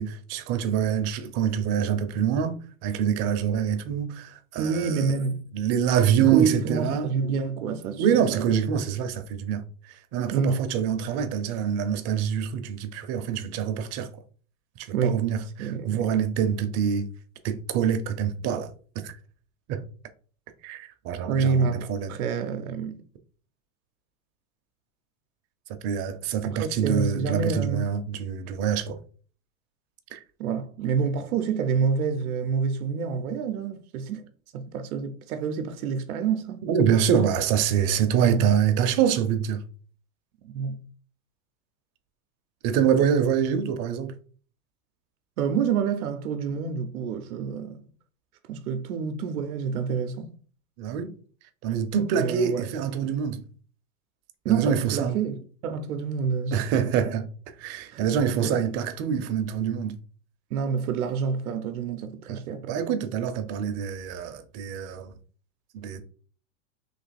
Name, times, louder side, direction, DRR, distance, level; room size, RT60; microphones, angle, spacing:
voice 1, 0.0-5.1 5.5-7.1 8.0-14.1 14.8-17.1 17.4-18.7 19.0-19.2 19.7-19.8 20.6-22.1 25.8-29.0 30.1-30.2 36.6-39.6 42.6-44.1 50.8-51.2 51.6-53.4 54.5-55.2 56.5-57.3 57.6-59.9 62.3-62.4 62.7-65.1 65.7-66.0, right 8 dB, 35° right, 0.6 m, -25 dB
voice 2, 4.6-5.5 6.2-8.5 10.3-10.7 14.9-15.2 15.6-16.1 21.3-23.0 26.5-27.9 30.4-34.2 34.5-36.6 38.2-38.5 40.4-40.8 45.4-47.9 48.5-50.4 52.1-52.7 54.4-56.6 57.9-58.1 58.4-58.6 60.5-62.8, right 6 dB, 85° right, 0.7 m, -28 dB
3.3 x 2.8 x 4.1 m
hypercardioid pair, 125°, 42 cm